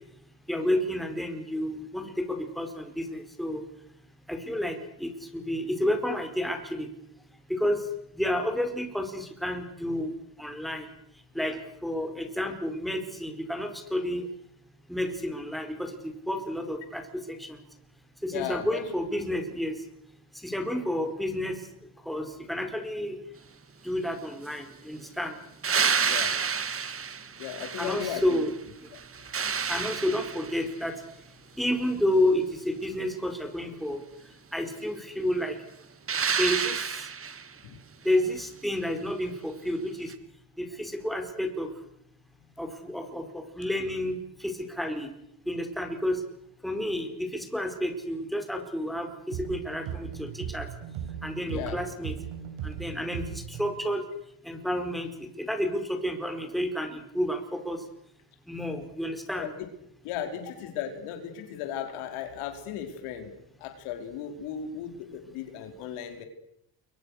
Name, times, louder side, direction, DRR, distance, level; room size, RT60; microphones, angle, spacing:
voice 1, 0.5-3.6 4.3-6.9 7.5-7.8 8.1-10.1 10.4-10.9 11.3-14.3 14.9-15.9 16.3-17.6 18.2-19.8 20.4-21.6 22.0-23.2 23.8-25.3 27.8-28.5 29.7-30.9 31.6-34.0 34.5-35.6 36.4-36.8 38.0-40.1 40.6-41.7 42.6-45.1 45.5-46.2 46.6-50.7 51.2-52.2 52.6-54.0 54.4-57.8 58.5-59.5, left 1 dB, ahead, 4 dB, 4.9 m, -30 dB
voice 2, 18.3-18.8 26.0-26.3 27.4-28.5 51.5-51.8 59.4-59.5 60.0-63.3 63.6-66.2, left 9 dB, 85° left, 6 dB, 4.5 m, -36 dB
sound 1, 25.6-28.5 28.9-30.7 36.1-37.5 40.1-40.2, right 6 dB, 25° right, 1.6 m, -29 dB
sound 2, 49.3-53.8, right 8 dB, 75° right, 6.9 m, -38 dB
29.0 x 23.0 x 6.6 m, 0.76 s
cardioid pair, 105°, 49 cm